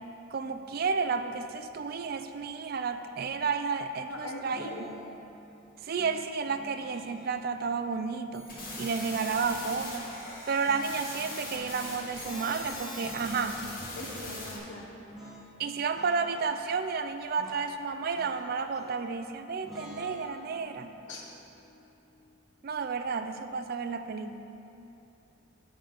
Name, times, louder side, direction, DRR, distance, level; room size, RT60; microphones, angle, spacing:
voice 1, 0.3-4.7 5.8-10.1 10.5-13.8 15.6-20.9 22.6-24.6, right 5 dB, 50° right, 9 dB, 0.4 m, -32 dB
voice 2, 4.1-4.9 14.0-14.9 21.1-21.3, left 1 dB, 70° left, -2 dB, 1.3 m, -40 dB
sound 1, 4.5-5.2 6.0-7.4 8.5-9.9 10.6-12.1 13.0-14.3 15.1-15.5 15.7-16.5 17.4-19.1 19.6-22.7, equal, ahead, 1.2 m, -49 dB
sound 2, 8.3-14.6, left 2 dB, 45° left, 1.6 m, -41 dB
10.0 x 3.8 x 6.9 m, 2.9 s
head